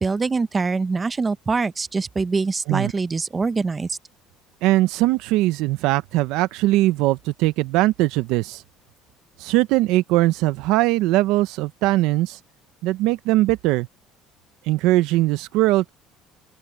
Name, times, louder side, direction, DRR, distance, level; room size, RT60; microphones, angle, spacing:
voice 1, 0.0-4.0, right 4 dB, 20° right, 0.9 m, -24 dB
voice 2, 4.6-8.6 9.4-12.4 12.8-13.9 14.7-15.9, right 17 dB, 75° right, 0.7 m, -20 dB
open air
cardioid pair, 145°, 0 cm